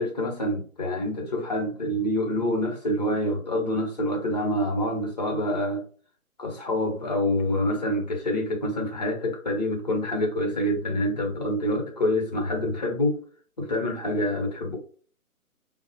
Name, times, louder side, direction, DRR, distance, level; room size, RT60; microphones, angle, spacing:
voice 1, 0.0-5.8 6.4-13.2 13.6-14.8, left 1 dB, 30° left, 0.7 m, -26 dB
3.5 x 2.0 x 2.7 m
figure-of-eight pair, 150°, 44 cm